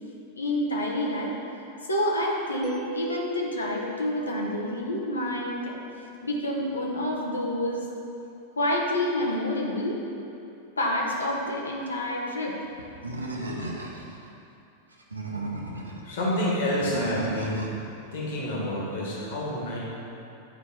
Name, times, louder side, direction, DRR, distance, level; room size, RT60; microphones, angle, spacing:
voice 1, 0.3-1.3 1.8-5.8 6.2-7.9 8.6-10.0 10.8-12.9, left 1 dB, 75° left, -2 dB, 1.1 m, -28 dB
Mallet percussion, 2.6-6.4, equal, 15° right, 0.8 m, -40 dB
Animal, 13.0-14.2 14.9-16.0 16.8-17.8, right 2 dB, 80° right, 0.7 m, -34 dB
voice 2, 16.0-17.8 18.1-19.8, left 1 dB, 55° left, -4 dB, 1.8 m, -28 dB
9.1 x 4.6 x 4.4 m, 2.7 s
figure-of-eight pair, 90°, 0 cm